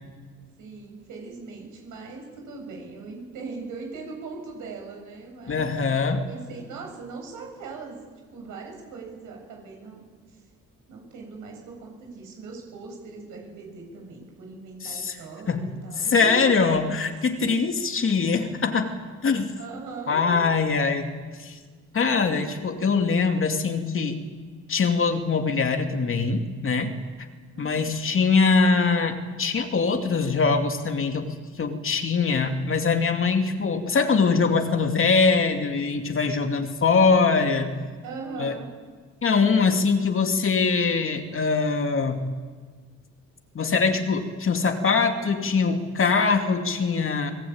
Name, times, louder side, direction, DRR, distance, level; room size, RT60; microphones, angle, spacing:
voice 1, 0.6-5.7 6.2-8.0 8.3-10.1 10.9-16.6 17.4-17.7 19.6-20.4 27.5-27.9 38.0-38.7, right 4 dB, 85° right, 1 dB, 7.8 m, -39 dB
voice 2, 5.5-6.3 14.8-15.2 15.5-15.6 16.0-18.9 19.2-19.5 20.1-21.1 21.4-21.6 21.9-24.2 24.7-26.9 27.6-31.3 31.6-37.7 38.4-38.6 39.2-42.3 43.5-47.3, left 4 dB, 45° left, 5 dB, 2.7 m, -22 dB
26.5 x 19.0 x 8.9 m, 1.5 s
cardioid pair, 90°, 30 cm